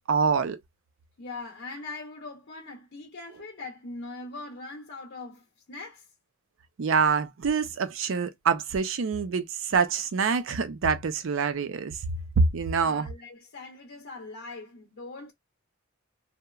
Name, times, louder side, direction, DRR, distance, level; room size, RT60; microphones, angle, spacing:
voice 1, 0.1-0.6 6.8-11.9 12.4-13.1, right 5 dB, 65° right, 0.5 m, -25 dB
voice 2, 1.2-6.1 12.8-15.3, left 3 dB, 55° left, 0.6 m, -41 dB
2.9 x 2.1 x 2.3 m
head